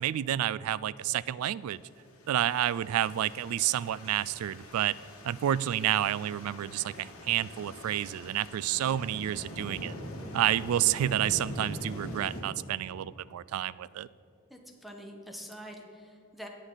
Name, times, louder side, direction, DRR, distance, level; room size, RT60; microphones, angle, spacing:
voice 1, 0.0-1.8 2.3-4.9 5.2-9.9 10.3-14.1, right 11 dB, 85° right, 18 dB, 0.3 m, -29 dB
sound 1, 2.1-12.4, equal, 75° left, 1.9 m, -43 dB
voice 2, 14.5-16.5, equal, ahead, 2 dB, 1.1 m, -45 dB
18.0 x 6.3 x 3.9 m, 2.6 s
head